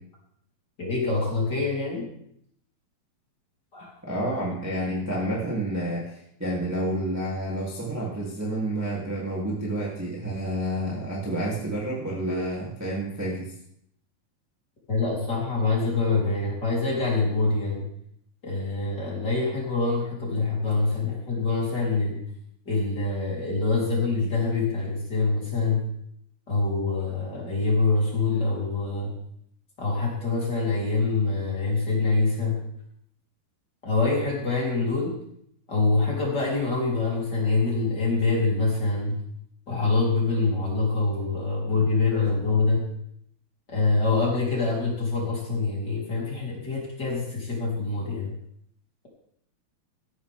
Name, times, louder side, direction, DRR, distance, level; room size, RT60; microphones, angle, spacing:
voice 1, 0.8-2.1 3.7-3.9 14.9-17.9 18.4-22.2 22.7-25.8 26.5-29.1 29.8-32.6 33.8-35.1 35.7-39.2 39.7-42.8 43.7-48.3, left 3 dB, 25° left, -4 dB, 3.9 m, -25 dB
voice 2, 4.0-13.5, right 1 dB, 5° right, -5 dB, 2.0 m, -29 dB
15.5 x 12.0 x 3.6 m, 0.71 s
omnidirectional pair, 4.8 m